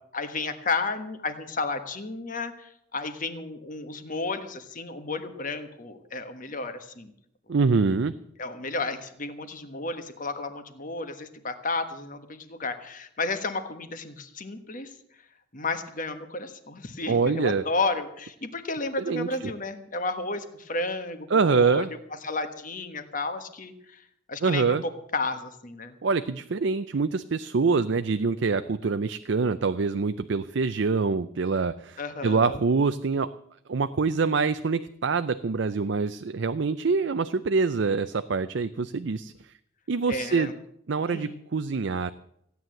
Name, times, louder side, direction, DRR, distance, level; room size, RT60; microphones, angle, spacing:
voice 1, 0.1-7.1 8.4-14.9 15.5-21.8 22.2-24.0 24.3-24.8 25.1-25.9 32.0-32.6 40.1-40.5 41.1-41.4, left 3 dB, 40° left, 8 dB, 1.4 m, -32 dB
voice 2, 7.5-8.1 17.1-17.6 19.0-19.5 21.3-21.9 24.4-24.8 26.0-33.3 33.7-39.5 39.9-40.5 40.9-42.1, right 4 dB, 60° right, 10 dB, 0.5 m, -25 dB
16.0 x 9.4 x 7.7 m, 0.74 s
head